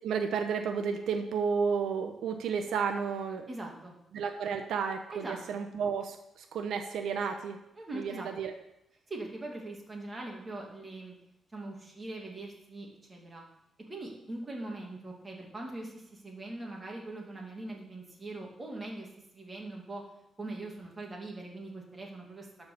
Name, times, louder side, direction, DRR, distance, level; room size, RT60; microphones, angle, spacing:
voice 1, 0.0-3.5 4.1-7.6 7.9-8.5, right 6 dB, 85° right, 6 dB, 0.8 m, -32 dB
voice 2, 3.5-3.9 5.1-5.6 7.7-8.3 9.1-11.2 11.5-13.4 13.9-19.1 19.3-20.0 20.4-22.5, right 2 dB, 25° right, -1 dB, 2.3 m, -41 dB
12.0 x 4.7 x 6.7 m, 0.82 s
cardioid pair, 135°, 0 cm